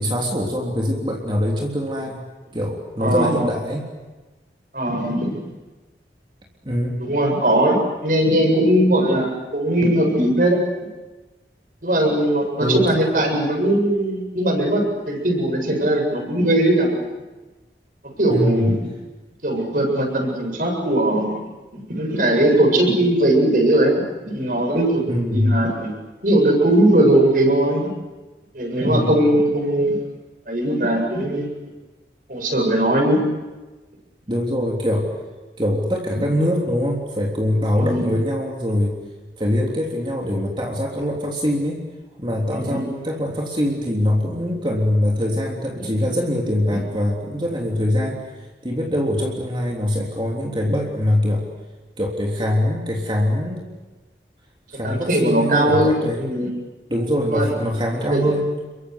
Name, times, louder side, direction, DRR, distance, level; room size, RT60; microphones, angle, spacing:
voice 1, 0.0-2.3 2.5-3.9 6.6-7.0 12.6-13.0 18.3-18.8 25.0-25.6 28.8-29.2 34.3-35.1 35.6-39.0 39.4-41.9 42.2-48.2 48.6-51.5 52.0-53.6 54.7-56.2 56.9-58.5, left 1 dB, 25° right, -1 dB, 3.5 m, -23 dB
voice 2, 3.0-3.3 4.7-5.4 7.1-10.6 11.8-16.9 18.2-18.7 19.4-21.4 21.7-23.9 24.2-25.0 25.3-25.9 26.2-27.9 28.5-30.0 30.5-31.5 32.3-33.3 37.7-38.0 42.5-42.8 54.8-56.5 57.3-57.5 58.1-58.2, right 1 dB, 50° right, 2 dB, 7.8 m, -19 dB
30.0 x 23.5 x 8.2 m, 1.2 s
head